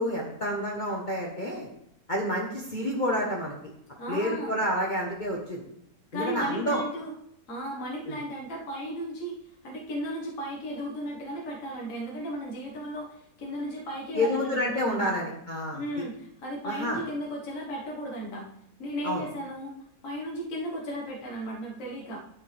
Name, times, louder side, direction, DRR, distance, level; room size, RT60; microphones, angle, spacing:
voice 1, 0.0-1.7 2.1-3.5 4.1-5.6 6.1-6.8 8.1-8.2 14.1-15.8 16.6-17.0 19.0-19.2, left 1 dB, 30° left, -2 dB, 1.2 m, -29 dB
voice 2, 4.0-4.6 6.1-7.1 7.5-15.2 15.7-18.5 18.8-19.8 20.0-22.2, equal, 50° left, -3 dB, 1.8 m, -35 dB
11.0 x 6.2 x 3.4 m, 0.77 s
omnidirectional pair, 1.8 m